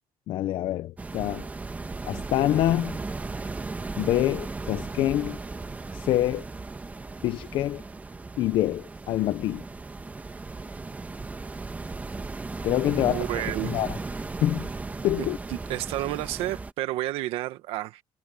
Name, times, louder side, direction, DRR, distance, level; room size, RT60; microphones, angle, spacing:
voice 1, 0.3-1.5 2.0-3.0 4.0-5.4 5.9-6.5 7.2-7.8 8.4-9.6 12.6-14.0 14.4-14.7 15.0-15.4, left 13 dB, 65° left, 0.7 m, -26 dB
sound 1, 1.0-16.7, right 3 dB, 15° right, 1.5 m, -36 dB
voice 2, 12.9-13.8 15.2-18.0, right 15 dB, 85° right, 1.4 m, -31 dB
cardioid pair, 140°, 9 cm